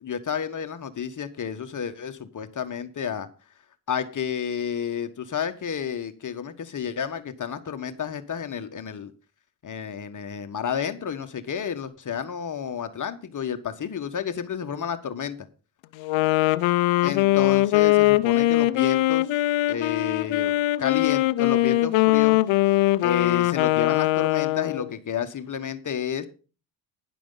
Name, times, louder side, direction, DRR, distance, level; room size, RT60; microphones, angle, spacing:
voice 1, 0.0-3.3 3.9-9.1 9.6-15.4 17.0-19.4 19.7-20.5 20.8-22.4 23.0-26.3, left 7 dB, 40° left, 8 dB, 1.5 m, -31 dB
Wind instrument woodwind instrument, 16.0-24.9, left 17 dB, 80° left, 0.8 m, -21 dB
12.0 x 10.5 x 4.0 m, 0.35 s
cardioid pair, 85°, 46 cm